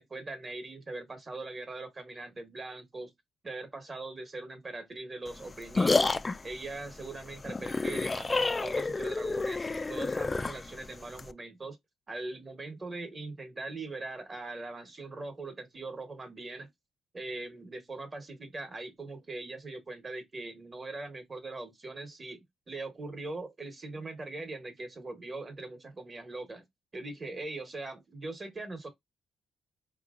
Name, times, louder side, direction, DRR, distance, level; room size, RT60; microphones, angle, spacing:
voice 1, 0.0-3.1 3.4-6.1 6.4-11.8 12.1-16.7 17.1-26.6 26.9-28.9, right 2 dB, 30° right, 1.1 m, -41 dB
sound 1, 5.3-11.3, left 3 dB, 25° left, 0.3 m, -30 dB
4.2 x 2.9 x 2.4 m
cardioid pair, 90°, 0 cm